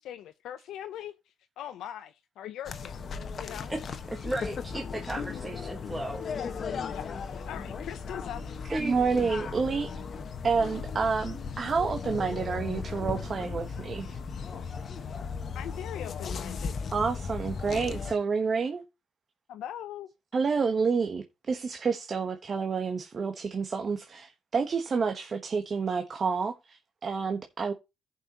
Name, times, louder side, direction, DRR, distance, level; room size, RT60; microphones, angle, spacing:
voice 1, 0.0-3.7 6.4-8.5 15.5-16.8 19.5-20.1, left 11 dB, 85° left, 0.6 m, -41 dB
sound 1, 2.6-18.1, left 5 dB, 50° left, 1.2 m, -36 dB
voice 2, 4.1-6.2 8.7-9.3, right 1 dB, 15° right, 1.5 m, -35 dB
voice 3, 8.7-9.9 10.4-14.2 16.9-18.8 20.3-27.7, right 5 dB, 40° right, 1.1 m, -29 dB
15.5 x 5.6 x 2.9 m
cardioid pair, 90°, 0 cm